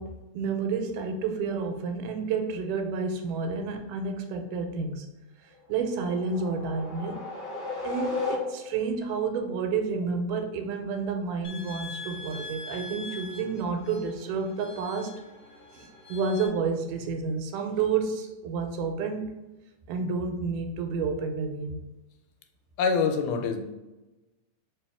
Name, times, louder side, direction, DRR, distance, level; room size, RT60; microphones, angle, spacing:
voice 1, 0.0-5.1 5.7-7.2 7.8-15.1 15.7-19.3 19.9-21.8, right 5 dB, 90° right, 5 dB, 2.2 m, -30 dB
sound 1, 5.7-8.9, left 3 dB, 70° left, 0.5 m, -34 dB
sound 2, 11.4-16.5, left 2 dB, 50° left, 1.2 m, -43 dB
voice 2, 22.8-23.6, left 5 dB, 90° left, 6 dB, 2.1 m, -25 dB
4.5 x 2.9 x 3.4 m, 1.1 s
omnidirectional pair, 3.6 m